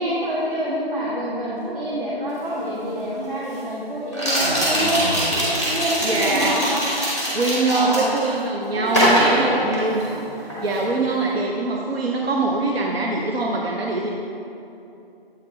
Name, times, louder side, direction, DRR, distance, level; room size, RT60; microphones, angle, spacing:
voice 1, 0.0-5.0 5.6-6.8 7.7-8.1 8.7-9.7, right 1 dB, 55° right, -8 dB, 1.3 m, -26 dB
sound 1, 2.4-2.5 4.1-8.3 8.9-10.2 10.5-10.8, equal, 15° right, 1.1 m, -22 dB
sound 2, 4.4-6.7, equal, 30° right, 0.8 m, -31 dB
voice 2, 6.0-6.6 7.3-10.1 10.4-14.1, right 2 dB, 75° right, -1 dB, 0.7 m, -23 dB
7.8 x 4.1 x 4.0 m, 2.8 s
figure-of-eight pair, 170°, 31 cm